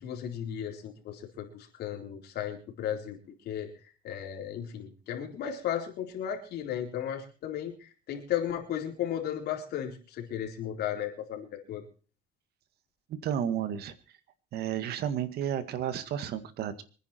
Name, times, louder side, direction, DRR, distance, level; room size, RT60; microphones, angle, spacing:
voice 1, 0.0-3.2 3.4-3.7 4.0-11.8, left 9 dB, 70° left, 3 dB, 4.2 m, -35 dB
voice 2, 13.1-13.9 14.5-16.8, right 9 dB, 70° right, 12 dB, 1.9 m, -32 dB
25.0 x 10.0 x 4.5 m, 0.38 s
cardioid pair, 110°, 17 cm